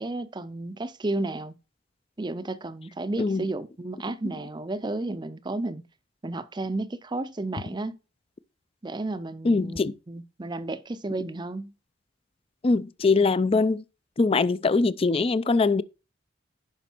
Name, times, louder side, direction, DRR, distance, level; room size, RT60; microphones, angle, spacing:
voice 1, 0.0-1.5 2.2-5.8 6.2-8.0 8.8-11.7, right 2 dB, 25° right, 0.5 m, -32 dB
voice 2, 9.4-9.9 12.6-13.8 14.2-15.8, left 3 dB, 30° left, 0.4 m, -22 dB
11.5 x 5.1 x 4.4 m
head